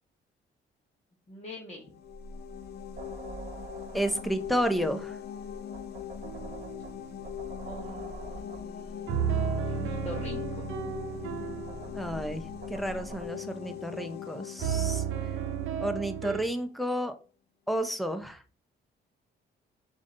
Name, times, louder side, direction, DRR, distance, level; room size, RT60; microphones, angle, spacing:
voice 1, 1.3-1.8 7.6-10.6, left 1 dB, 35° left, -1 dB, 1.3 m, -44 dB
sound 1, 1.8-16.5, left 10 dB, 55° left, 0.5 m, -42 dB
sound 2, 2.0-13.3, right 2 dB, 40° right, 1.2 m, -45 dB
voice 2, 3.9-5.1 11.9-12.4 12.7-15.0 15.8-17.1 17.7-18.4, equal, ahead, 8 dB, 0.7 m, -31 dB
sound 3, 6.2-6.8 9.1-13.9 14.6-16.4, right 7 dB, 85° right, 0.7 m, -33 dB
5.1 x 2.6 x 3.8 m, 0.36 s
cardioid pair, 90°, 20 cm